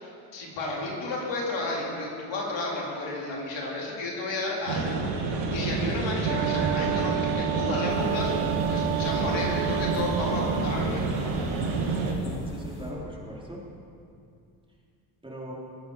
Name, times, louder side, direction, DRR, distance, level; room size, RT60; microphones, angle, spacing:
voice 1, 0.3-8.4 8.7-11.3, left 2 dB, 65° left, -3 dB, 4.2 m, -32 dB
sound 1, 4.7-12.1, right 3 dB, 75° right, 2.4 m, -28 dB
Wind instrument woodwind instrument, 6.2-10.9, right 17 dB, 55° right, 0.6 m, -31 dB
sound 2, 7.9-12.9, left 1 dB, 40° left, 3.2 m, -42 dB
voice 2, 12.0-13.6 15.2-15.5, equal, 10° right, -4 dB, 4.3 m, -39 dB
20.5 x 8.8 x 5.2 m, 2.4 s
hypercardioid pair, 65°, 48 cm